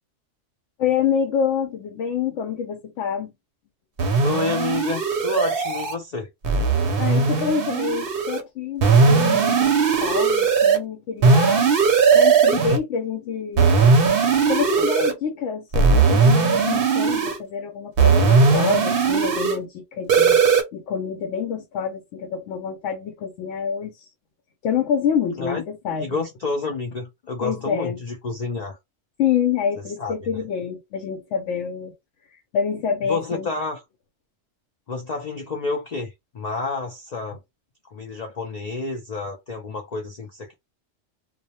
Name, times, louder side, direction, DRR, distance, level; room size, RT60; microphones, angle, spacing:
voice 1, 0.8-3.3 7.0-11.6 12.1-13.7 14.5-20.4 20.7-24.1 24.6-26.2 27.4-28.0 29.2-31.9 32.5-33.5, left 7 dB, 85° left, 0.9 m, -27 dB
sound 1, 4.0-5.9 6.4-8.4 8.8-10.8 11.2-12.8 13.6-15.1 15.7-17.4 18.0-19.6 20.1-20.6, right 5 dB, 60° right, 0.7 m, -18 dB
voice 2, 4.2-6.3 25.4-25.6 26.0-28.8 30.0-30.4 33.0-33.8 34.9-37.4 37.9-40.5, left 4 dB, 65° left, 0.4 m, -29 dB
2.2 x 2.0 x 2.7 m
omnidirectional pair, 1.2 m